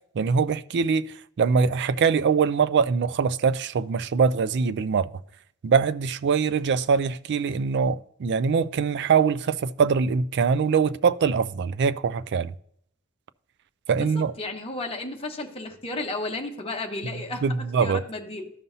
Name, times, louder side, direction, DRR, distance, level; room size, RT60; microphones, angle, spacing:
voice 1, 0.1-5.1 5.6-12.5 13.9-14.3 17.4-18.0, right 5 dB, 55° right, 0.4 m, -23 dB
voice 2, 14.0-17.4 17.8-18.5, left 2 dB, 25° left, 1.0 m, -33 dB
14.0 x 5.4 x 2.7 m
head